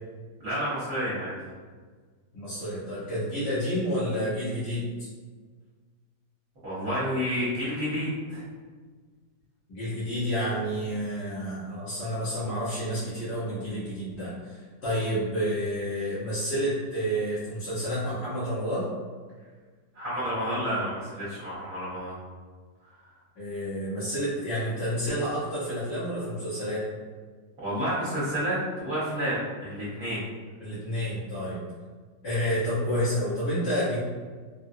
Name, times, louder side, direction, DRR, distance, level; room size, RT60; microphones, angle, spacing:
voice 1, 0.4-1.3 6.6-8.4 19.9-22.1 27.6-30.2, equal, 55° right, -11 dB, 1.4 m, -30 dB
voice 2, 2.3-5.1 9.7-18.9 23.4-26.8 30.6-31.6 32.2-34.0, equal, 75° left, -13 dB, 1.5 m, -29 dB
3.7 x 2.2 x 2.6 m, 1.5 s
omnidirectional pair, 1.9 m